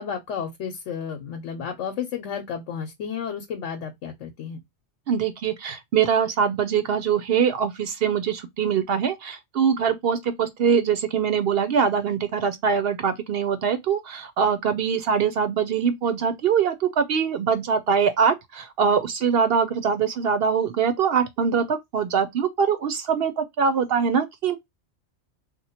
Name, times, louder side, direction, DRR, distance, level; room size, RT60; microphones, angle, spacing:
voice 1, 0.0-4.6, left 7 dB, 90° left, 1.0 m, -32 dB
voice 2, 5.1-24.6, right 7 dB, 65° right, 0.7 m, -23 dB
2.9 x 2.2 x 4.1 m
omnidirectional pair, 1.2 m